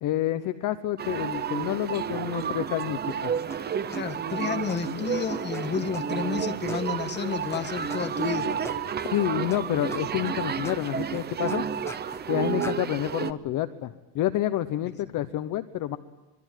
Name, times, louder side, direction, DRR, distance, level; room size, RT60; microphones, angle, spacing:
voice 1, 0.0-3.3 9.0-11.6 12.3-16.0, left 13 dB, 40° left, 11 dB, 1.0 m, -28 dB
sound 1, 1.0-13.3, right 7 dB, 20° right, 0.9 m, -31 dB
sound 2, 3.1-3.2 3.5-3.6 3.9-4.2 4.7-4.8 5.2-5.3 5.5-5.6 5.9-6.3 6.7-6.8 7.1-7.2 7.5-7.6 7.9-8.2 8.6-8.8 9.1-9.6 9.9-10.3 10.6-10.8 11.1-12.2 12.6-12.7, left 2 dB, 5° left, 1.0 m, -42 dB
voice 2, 3.9-8.5, left 6 dB, 20° left, 7 dB, 1.7 m, -31 dB
sound 3, 6.3-12.2, right 6 dB, 45° right, 5.1 m, -52 dB
26.5 x 23.0 x 9.2 m, 0.98 s
cardioid pair, 160°, 47 cm